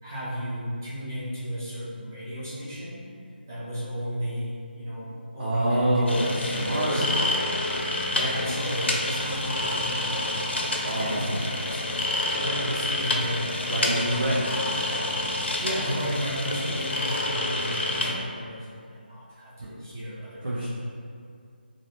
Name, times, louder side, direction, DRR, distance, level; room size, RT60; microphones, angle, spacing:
voice 1, 0.0-3.1 3.5-6.1 6.4-7.3 8.1-13.7 14.0-14.2 14.8-15.0 15.3-20.7, equal, 15° right, -8 dB, 0.3 m, -34 dB
voice 2, 5.4-7.1 10.8-11.4 13.7-14.4 20.4-20.7, right 1 dB, 70° right, -7 dB, 0.5 m, -26 dB
sound 1, 6.1-18.1, left 2 dB, 90° left, 0.4 m, -28 dB
2.5 x 2.1 x 2.8 m, 2.3 s
figure-of-eight pair, 175°, 6 cm